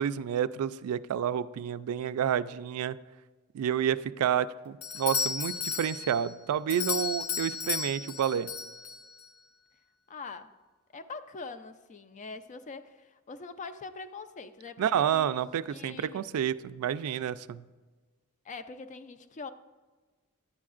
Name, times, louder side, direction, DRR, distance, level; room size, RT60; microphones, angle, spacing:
voice 1, 0.0-3.0 3.5-8.5 14.8-17.6, right 9 dB, 85° right, 0.3 m, -29 dB
Doorbell, 4.8-9.3, left 6 dB, 80° left, 0.8 m, -34 dB
voice 2, 10.1-10.6 10.9-15.4 15.7-16.3 18.4-19.5, left 4 dB, 35° left, 0.4 m, -43 dB
11.0 x 8.5 x 2.4 m
head